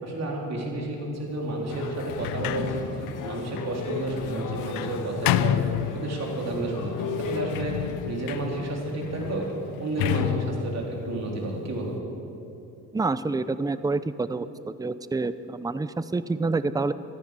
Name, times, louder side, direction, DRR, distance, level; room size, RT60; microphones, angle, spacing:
voice 1, 0.0-2.8 3.2-5.6 5.9-7.7 8.1-9.5 9.8-11.9, right 2 dB, 50° right, -2 dB, 3.9 m, -31 dB
sound 1, 1.7-7.5, left 5 dB, 60° left, 1.7 m, -35 dB
Sliding door, 2.0-6.5 7.1-12.0, left 13 dB, 85° left, 0.6 m, -31 dB
voice 2, 12.9-14.5 14.8-16.9, right 3 dB, 10° right, 14 dB, 0.6 m, -27 dB
14.5 x 14.0 x 6.7 m, 2.7 s
cardioid pair, 80°, 35 cm